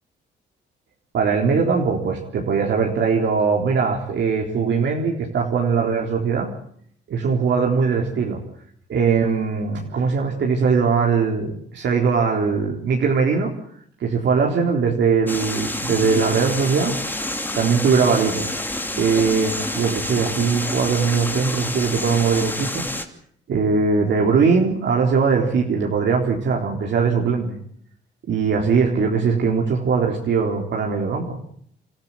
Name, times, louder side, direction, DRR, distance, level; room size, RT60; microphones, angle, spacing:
voice 1, 1.1-6.5 7.1-8.4 8.9-13.5 14.0-16.9 17.5-18.5 18.9-22.8 23.5-27.6 28.3-31.4, right 5 dB, 65° right, 0 dB, 3.8 m, -20 dB
sound 1, 15.3-23.1, left 1 dB, 10° left, 2.8 m, -28 dB
27.5 x 13.5 x 9.1 m, 0.64 s
cardioid pair, 90°, 20 cm